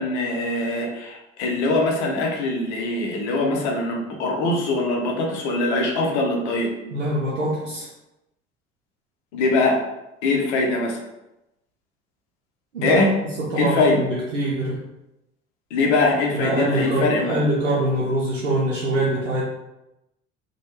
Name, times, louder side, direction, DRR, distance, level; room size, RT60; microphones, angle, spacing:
voice 1, 0.0-6.7 9.3-9.8 10.2-11.0 12.8-13.1 13.6-14.0 15.7-17.4, left 2 dB, 70° left, 1 dB, 0.7 m, -22 dB
voice 2, 6.9-7.9 12.7-13.0 13.4-14.8 16.3-19.4, right 1 dB, 85° right, -7 dB, 0.6 m, -24 dB
3.1 x 2.2 x 3.0 m, 0.92 s
figure-of-eight pair, 55°, 36 cm